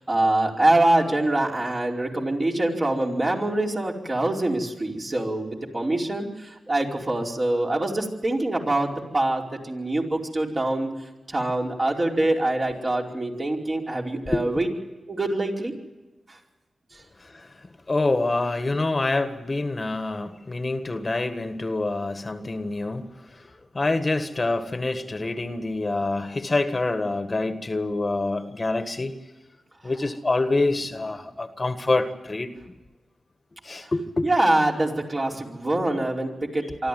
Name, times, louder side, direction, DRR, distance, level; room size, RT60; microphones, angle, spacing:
voice 1, 0.0-10.9 11.3-14.7 15.1-15.7 34.2-36.9, right 2 dB, 35° right, 0 dB, 4.9 m, -24 dB
voice 2, 17.9-23.0 23.7-29.1 29.8-32.5 33.6-34.3, left 2 dB, 35° left, 8 dB, 1.6 m, -26 dB
24.5 x 13.5 x 9.4 m, 1.1 s
cardioid pair, 60°, 0 cm